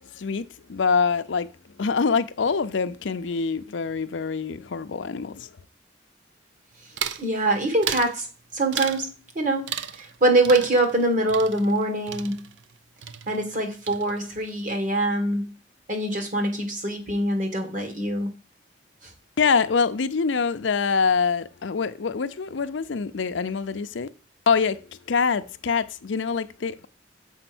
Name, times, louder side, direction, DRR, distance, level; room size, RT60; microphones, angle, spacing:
voice 1, 0.0-1.5 1.8-5.5 19.4-24.1 24.5-26.9, left 5 dB, 85° left, 0.5 m, -25 dB
sound 1, 7.0-7.3 7.8-8.2 8.7-9.1 9.7-10.2 10.4-12.8 13.0-13.6 13.9-14.4, right 9 dB, 80° right, 0.5 m, -34 dB
voice 2, 7.2-8.3 8.5-12.4 13.3-15.5 15.9-18.3, right 1 dB, 45° right, 1.8 m, -24 dB
7.0 x 4.4 x 6.0 m
head